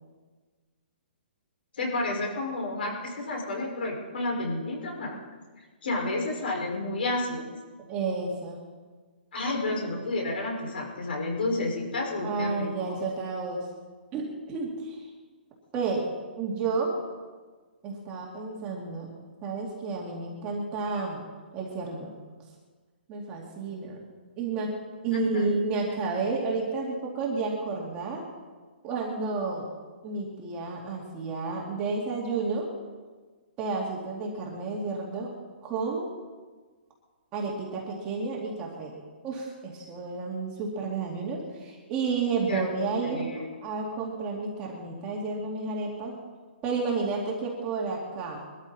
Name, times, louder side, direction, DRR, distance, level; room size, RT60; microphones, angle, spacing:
voice 1, 1.7-5.2 5.8-7.5 9.3-13.0 25.1-25.6 42.5-42.6 43.0-43.4, left 2 dB, 60° left, 0 dB, 5.3 m, -30 dB
voice 2, 7.9-8.6 12.2-13.7 14.1-15.1 15.7-16.1 16.4-17.0 17.8-19.1 19.4-21.2 21.5-22.1 23.1-24.0 24.4-24.7 25.0-28.2 28.8-29.7 30.0-32.7 33.6-35.3 35.6-36.1 37.3-39.0 39.2-43.3 43.6-46.1 46.6-48.4, right 4 dB, 15° right, -2 dB, 2.3 m, -31 dB
22.5 x 13.5 x 4.2 m, 1.4 s
hypercardioid pair, 175°, 6 cm